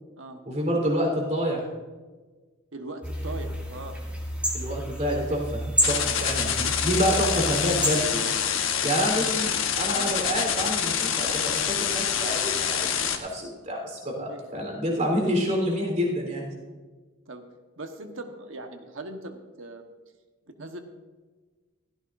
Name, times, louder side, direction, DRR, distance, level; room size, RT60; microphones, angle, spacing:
voice 1, 0.5-1.7 4.5-8.3 8.8-16.4, equal, 40° right, 0 dB, 3.7 m, -28 dB
voice 2, 2.7-3.9 6.4-6.6 9.4-9.5 9.9-10.1 14.2-14.4 17.3-17.5 17.8-19.9 20.6-20.8, right 2 dB, 65° right, 5 dB, 1.3 m, -40 dB
sound 1, 3.0-8.0, equal, 5° right, 2.2 m, -30 dB
sound 2, 5.8-13.2, left 8 dB, 70° left, 1.2 m, -26 dB
16.0 x 14.5 x 2.6 m, 1.3 s
head